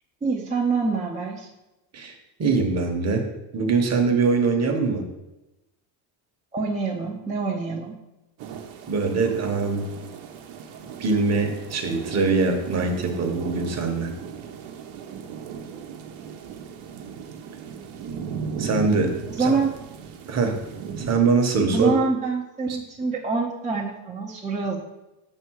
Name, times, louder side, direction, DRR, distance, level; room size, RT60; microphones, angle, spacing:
voice 1, 0.2-1.5 6.5-7.9 19.4-19.7 21.7-24.8, right 4 dB, 15° right, -3 dB, 0.7 m, -25 dB
voice 2, 2.4-3.2 3.5-5.0 8.9-9.9 11.0-14.1 18.6-19.1 19.4-19.6 20.3-20.6 21.1-21.9 22.7-22.8, right 4 dB, 35° right, 3 dB, 1.2 m, -22 dB
sound 1, 8.4-21.2, right 6 dB, 70° right, 1.1 m, -37 dB
6.8 x 4.4 x 6.3 m, 0.98 s
cardioid pair, 160°, 48 cm